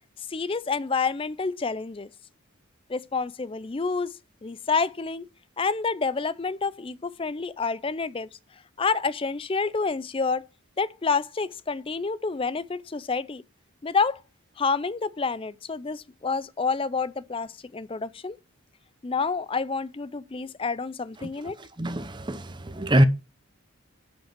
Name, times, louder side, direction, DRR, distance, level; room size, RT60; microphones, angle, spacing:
voice 1, 0.3-2.1 2.9-4.1 4.4-5.3 5.6-8.3 8.8-10.4 10.8-13.4 13.8-14.2 14.6-18.4 19.0-21.6, left 4 dB, 25° left, 0.4 m, -28 dB
voice 2, 21.8-22.4 22.7-23.0, equal, 20° right, 0.7 m, -22 dB
10.5 x 5.2 x 6.0 m
head